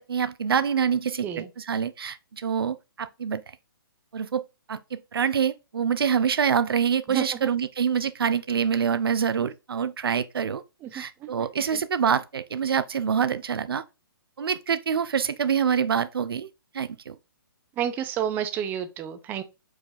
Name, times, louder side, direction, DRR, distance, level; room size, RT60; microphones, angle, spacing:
voice 1, 0.0-3.4 4.1-4.4 4.7-10.6 10.9-13.8 14.4-16.5 16.7-17.1, right 7 dB, 80° right, 0.5 m, -26 dB
voice 2, 7.1-7.5 10.8-11.3 11.7-11.8 17.8-19.4, right 9 dB, 15° right, 0.4 m, -30 dB
4.8 x 2.4 x 3.9 m
hypercardioid pair, 145°, 12 cm